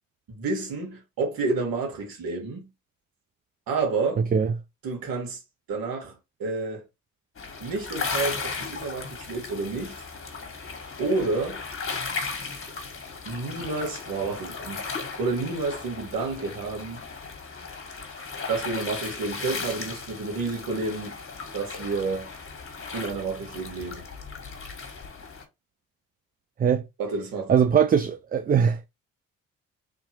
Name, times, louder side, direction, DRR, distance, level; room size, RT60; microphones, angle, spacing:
voice 1, 0.3-2.7 3.7-4.2 4.8-5.4 5.7-6.1 6.4-6.8 7.6-9.9 11.0-11.6 13.3-14.8 15.2-17.0 18.5-21.2 21.5-22.3 22.9-24.0 27.0-27.5, right 3 dB, 75° right, 2.0 m, -29 dB
sound 1, 7.4-25.4, left 4 dB, 35° left, 1.6 m, -36 dB
voice 2, 27.5-28.9, right 7 dB, 25° right, 0.4 m, -21 dB
3.6 x 2.9 x 4.4 m
supercardioid pair, 70°, 35 cm